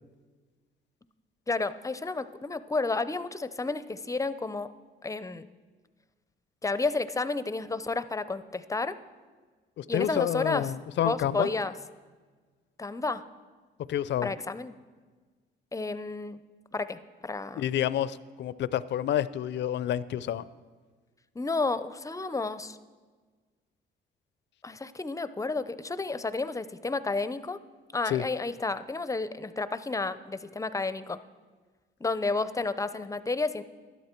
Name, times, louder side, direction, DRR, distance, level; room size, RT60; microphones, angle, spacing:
voice 1, 1.5-4.7 5.0-5.5 6.6-8.9 9.9-10.6 11.0-11.7 12.8-13.2 14.2-14.7 15.7-16.4 16.7-17.6 21.4-22.8 24.6-27.6 27.9-31.2 32.0-33.6, left 3 dB, 15° left, 13 dB, 0.5 m, -31 dB
voice 2, 9.8-11.5 13.9-14.3 17.5-20.5 28.1-28.2, left 11 dB, 65° left, 17 dB, 0.5 m, -29 dB
12.5 x 11.0 x 4.5 m, 1.4 s
cardioid pair, 90°, 20 cm